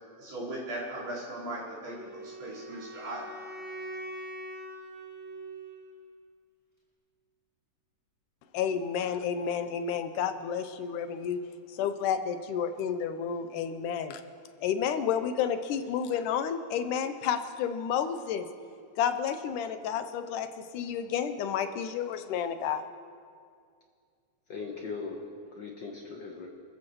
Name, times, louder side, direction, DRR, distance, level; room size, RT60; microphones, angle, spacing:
voice 1, 0.2-3.3, right 1 dB, 65° right, -6 dB, 5.7 m, -38 dB
Wind instrument woodwind instrument, 1.9-6.0, right 1 dB, 10° right, 4.9 m, -43 dB
voice 2, 8.5-11.4 11.7-14.2 14.6-18.5 19.0-20.5 20.7-22.8, left 8 dB, 90° left, 9 dB, 2.3 m, -30 dB
voice 3, 24.5-26.5, left 4 dB, 65° left, 0 dB, 1.1 m, -39 dB
28.5 x 14.0 x 3.1 m, 2.2 s
omnidirectional pair, 3.6 m